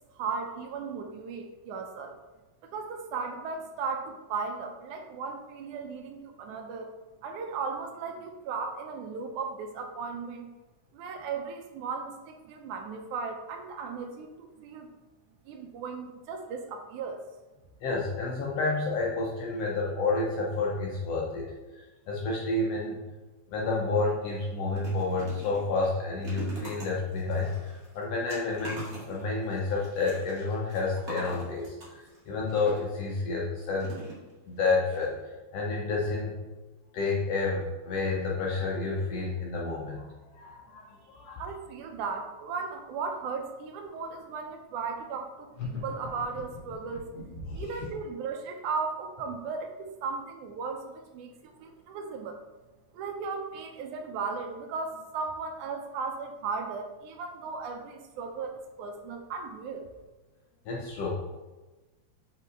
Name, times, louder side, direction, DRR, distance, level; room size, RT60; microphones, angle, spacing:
voice 1, 0.1-2.2 2.6-6.9 7.2-10.5 10.9-14.9 15.5-17.2 40.7-40.8 41.4-47.1 47.5-52.4 52.9-59.9, right 5 dB, 80° right, 4 dB, 2.1 m, -36 dB
voice 2, 17.8-21.5 21.7-23.0 23.5-33.9 34.5-36.4 36.9-40.0 40.3-41.4 47.4-47.7 60.6-61.1, left 3 dB, 70° left, -3 dB, 1.6 m, -30 dB
sound 1, 23.9-24.0 24.3-33.1 33.8-34.6 34.9-35.0 35.3-35.4, right 2 dB, 35° right, 2.0 m, -44 dB
sound 2, 45.5-47.8, left 3 dB, 50° left, 2.3 m, -40 dB
5.5 x 5.2 x 3.9 m, 1.2 s
omnidirectional pair, 3.6 m